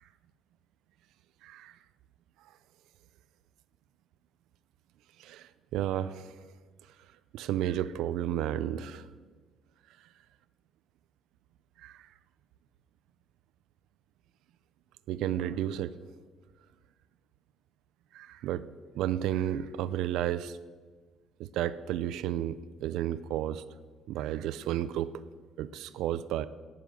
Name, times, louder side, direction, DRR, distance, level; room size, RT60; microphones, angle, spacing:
voice 1, 1.4-1.8 5.2-6.4 7.3-9.1 11.8-12.1 15.1-15.9 18.1-18.7 18.9-20.6 21.4-23.6 24.1-25.2 25.6-26.5, right 11 dB, 80° right, 14 dB, 0.5 m, -32 dB
10.5 x 9.6 x 8.0 m, 1.4 s
cardioid pair, 85°, 0 cm